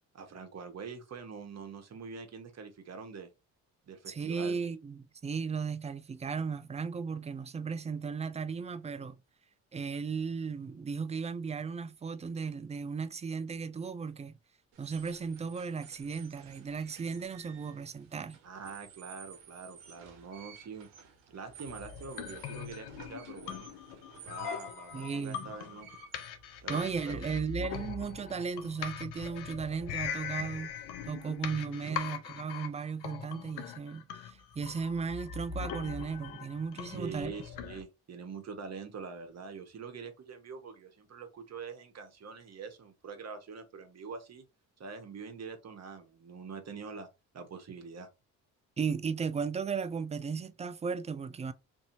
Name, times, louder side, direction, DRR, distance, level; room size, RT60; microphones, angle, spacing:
voice 1, 0.1-3.3 3.8-4.6 18.4-20.9 21.3-23.7 24.2-25.9 26.6-27.4 31.8-32.0 36.9-44.4 44.8-47.1 47.3-48.1, right 5 dB, 40° right, 1.0 m, -44 dB
voice 2, 4.1-9.2 9.7-14.3 14.8-18.4 24.9-25.5 26.7-37.3 48.8-51.5, right 5 dB, 20° right, 0.3 m, -36 dB
sound 1, 14.7-27.4, right 8 dB, 85° right, 0.8 m, -54 dB
sound 2, 21.7-37.8, left 8 dB, 80° left, 0.6 m, -41 dB
2.7 x 2.7 x 2.6 m
hypercardioid pair, 55°, 39 cm